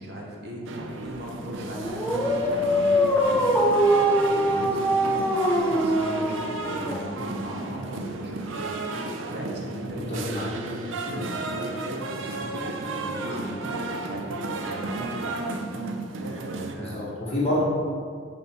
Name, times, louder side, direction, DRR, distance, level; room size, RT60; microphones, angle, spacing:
voice 1, 0.0-3.5 3.8-10.3 11.0-15.4 15.8-17.1 17.4-17.6, right 1 dB, 50° right, -2 dB, 1.0 m, -39 dB
sound 1, 0.7-16.8, right 2 dB, 70° right, 0.6 m, -33 dB
Dog, 1.7-7.4, equal, 5° left, 0.4 m, -23 dB
voice 2, 10.1-10.5 16.8-17.6, left 1 dB, 30° left, -7 dB, 1.8 m, -27 dB
5.7 x 4.5 x 6.2 m, 2.1 s
head